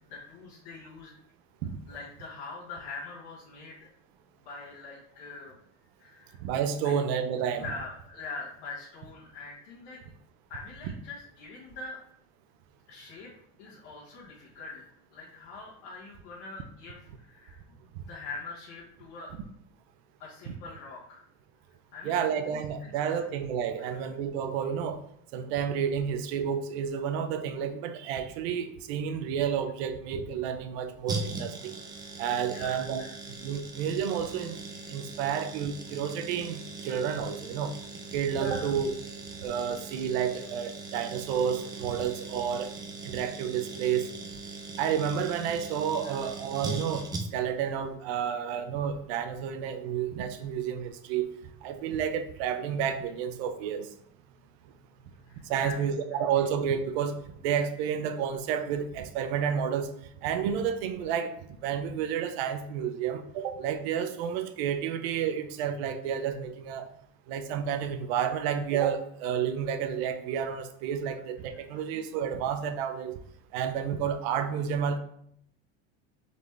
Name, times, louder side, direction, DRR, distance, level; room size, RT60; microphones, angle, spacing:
voice 1, 0.1-1.1 1.9-3.9 4.4-5.5 6.0-6.4 6.8-6.9 7.5-10.0 10.5-12.0 12.9-13.3 13.6-19.3 20.2-21.2 21.9-23.3 23.8-24.1 32.5-33.1 38.4-38.7 46.0-46.3 55.2-55.8 71.7-71.8, left 3 dB, 75° left, -7 dB, 1.2 m, -43 dB
voice 2, 6.4-7.7 10.8-10.9 20.5-20.6 22.0-25.0 25.3-31.7 32.2-33.0 33.4-34.6 34.9-37.7 38.1-38.9 39.4-42.7 43.0-44.0 44.8-47.0 47.3-51.3 51.6-53.9 55.5-57.2 57.4-59.9 60.2-61.3 61.6-66.8 67.3-73.1 73.5-75.0, right 8 dB, 75° right, 9 dB, 0.6 m, -30 dB
sound 1, 31.1-47.6 47.8-47.9, right 3 dB, 15° right, 0.3 m, -40 dB
4.0 x 3.4 x 3.2 m, 0.68 s
cardioid pair, 155°, 32 cm